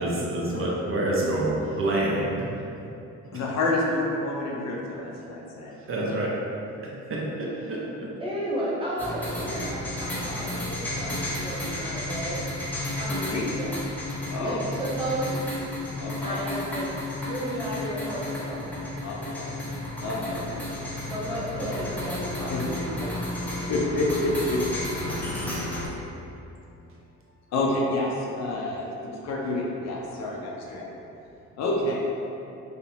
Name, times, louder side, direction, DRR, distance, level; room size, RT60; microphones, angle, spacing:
voice 1, 0.0-2.5 5.9-6.4 6.8-7.8, right 1 dB, 45° right, -4 dB, 0.5 m, -27 dB
voice 2, 3.3-5.7 13.2-13.4 14.3-14.6 16.0-16.4 19.0-19.5 20.0-20.5 22.5-23.1 23.7-25.2 27.5-30.8 31.6-32.2, left 2 dB, 60° left, -2 dB, 0.5 m, -29 dB
voice 3, 8.2-12.4 13.0-13.2 13.5-13.7 14.4-15.5 16.2-16.9 17.2-18.6 21.1-23.1, right 1 dB, 15° right, -9 dB, 0.8 m, -33 dB
sound 1, 9.0-25.9, left 1 dB, 5° left, 0.5 m, -32 dB
2.9 x 2.0 x 2.7 m, 2.7 s
cardioid pair, 90°, 30 cm